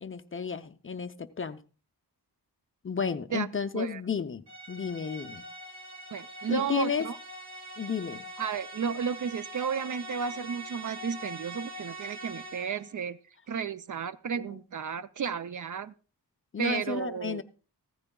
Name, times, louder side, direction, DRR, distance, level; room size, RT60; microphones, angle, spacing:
voice 1, 0.0-1.6 2.8-5.4 6.5-7.1 7.8-8.3 14.3-14.5 16.5-17.4, left 5 dB, 30° left, 8 dB, 0.5 m, -32 dB
sound 1, 4.5-12.9, right 1 dB, 70° right, 2.6 m, -43 dB
voice 2, 6.1-7.2 8.4-13.2 13.5-15.9 16.6-17.4, right 7 dB, 50° right, 14 dB, 0.4 m, -33 dB
15.5 x 13.5 x 2.3 m, 0.37 s
wide cardioid pair, 165°, 41 cm